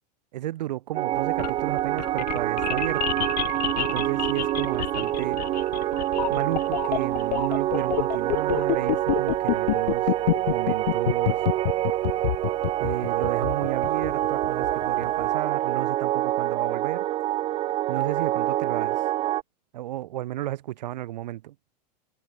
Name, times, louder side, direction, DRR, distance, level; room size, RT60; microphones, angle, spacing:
voice 1, 0.3-3.2 3.8-5.4 6.3-10.0 10.5-11.4 12.8-17.0 17.9-19.0 19.7-21.5, right 14 dB, 80° right, 1.1 m, -33 dB
sound 1, 0.9-19.4, right 14 dB, 25° right, 0.5 m, -26 dB
sound 2, 1.1-15.3, left 15 dB, 75° left, 2.0 m, -28 dB
supercardioid pair, 145°, 21 cm